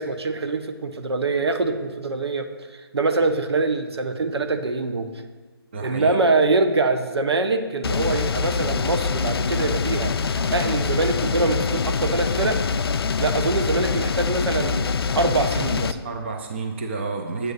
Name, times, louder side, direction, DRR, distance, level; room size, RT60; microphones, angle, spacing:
voice 1, 0.0-5.1 5.8-12.6 13.2-14.9 15.2-16.0, right 3 dB, 85° right, 7 dB, 0.8 m, -24 dB
voice 2, 5.7-6.2 16.0-17.5, right 4 dB, 30° right, 4 dB, 0.4 m, -30 dB
sound 1, 7.8-15.9, left 5 dB, 70° left, 0.4 m, -24 dB
8.2 x 3.1 x 6.4 m, 1.3 s
hypercardioid pair, 165°, 13 cm